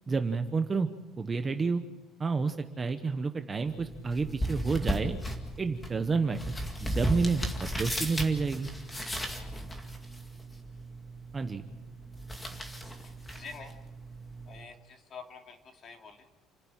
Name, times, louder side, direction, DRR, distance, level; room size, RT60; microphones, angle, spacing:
voice 1, 0.1-0.9 1.2-1.8 2.2-5.2 5.6-6.5 6.8-8.7 11.3-11.6, right 4 dB, 20° right, 7 dB, 1.0 m, -29 dB
sound 1, 3.6-14.6, equal, 10° left, 2.2 m, -36 dB
voice 2, 13.4-13.7 14.5-15.6 15.8-16.2, left 5 dB, 30° left, 4 dB, 2.6 m, -47 dB
29.0 x 11.0 x 8.8 m, 1.2 s
cardioid pair, 175°, 0 cm